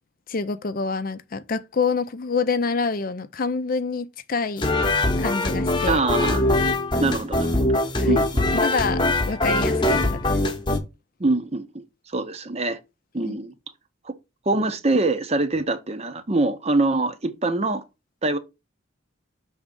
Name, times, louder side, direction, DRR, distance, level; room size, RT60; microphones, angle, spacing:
voice 1, 0.3-4.7 5.2-6.0 8.0-8.2 8.6-9.0 9.3-10.4 13.2-13.4, left 4 dB, 45° left, 0.5 m, -27 dB
sound 1, 4.6-10.8, left 2 dB, 25° left, 1.0 m, -22 dB
voice 2, 5.9-6.4 7.0-8.5 11.2-12.8 13.1-13.5 14.0-14.1 14.5-17.8 18.2-18.4, right 2 dB, 30° right, 0.7 m, -24 dB
6.3 x 3.6 x 5.2 m
head